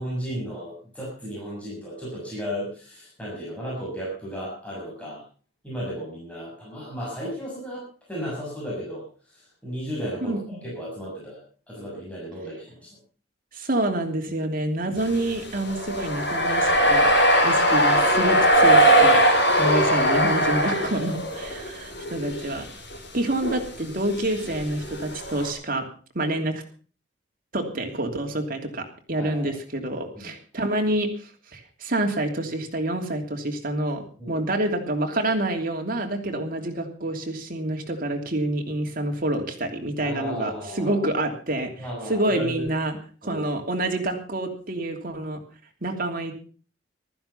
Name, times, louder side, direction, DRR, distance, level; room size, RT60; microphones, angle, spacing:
voice 1, 0.0-5.2 5.6-9.0 9.3-12.9 29.2-29.5 30.1-30.3 34.2-34.4 40.0-41.0 41.8-42.7 43.2-43.4, equal, 5° left, -6 dB, 6.8 m, -34 dB
voice 2, 10.2-10.6 13.5-17.1 17.4-19.2 19.6-22.7 23.1-25.8 26.1-26.5 27.5-41.7 42.1-45.4 45.8-46.3, right 1 dB, 50° right, 3 dB, 3.0 m, -27 dB
sound 1, 15.0-21.7 22.0-22.6 22.9-23.0 23.4-23.6 24.2-25.5, right 1 dB, 65° left, 4.5 m, -20 dB
15.0 x 13.0 x 5.6 m, 0.40 s
head